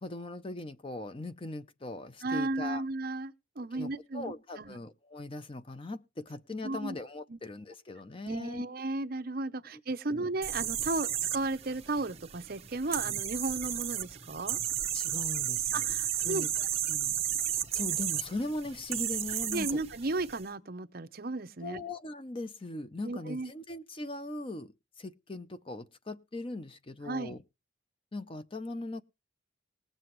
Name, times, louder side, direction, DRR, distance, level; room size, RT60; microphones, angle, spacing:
voice 1, 0.0-2.8 3.7-8.6 9.7-9.8 10.1-10.3 13.1-13.2 14.9-15.9 16.2-16.5 16.9-19.7 21.6-27.4 28.1-29.0, left 2 dB, 25° left, 0.6 m, -40 dB
voice 2, 2.2-4.8 6.6-6.9 7.3-7.4 8.2-14.6 15.7-16.7 19.5-21.8 23.0-23.5 27.1-27.3, right 2 dB, 45° right, 0.7 m, -34 dB
sound 1, 10.4-20.4, right 10 dB, 30° right, 1.0 m, -33 dB
19.5 x 7.7 x 3.1 m
head